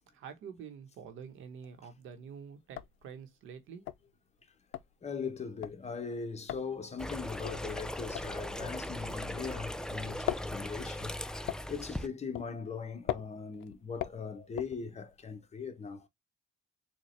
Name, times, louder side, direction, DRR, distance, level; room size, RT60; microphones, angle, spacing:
voice 1, 0.1-3.8, right 7 dB, 85° right, 1.0 m, -47 dB
sound 1, 1.4-1.9 2.2-2.3 2.6-9.7 9.9-15.3, left 13 dB, 90° left, 0.4 m, -41 dB
voice 2, 5.0-16.1, left 5 dB, 35° left, 0.9 m, -40 dB
sound 2, 7.0-12.1, left 1 dB, 5° left, 0.3 m, -39 dB
4.3 x 2.3 x 3.0 m
cardioid pair, 90°, 20 cm